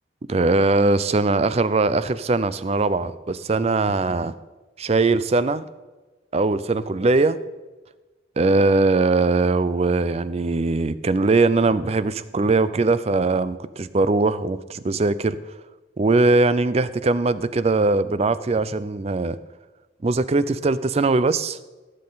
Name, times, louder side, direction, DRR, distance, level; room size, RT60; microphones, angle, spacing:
voice 1, 0.3-4.3 4.8-5.7 6.3-7.4 8.4-15.4 16.0-19.4 20.0-21.6, right 3 dB, 30° right, 15 dB, 0.4 m, -21 dB
16.0 x 7.6 x 4.0 m, 1.2 s
head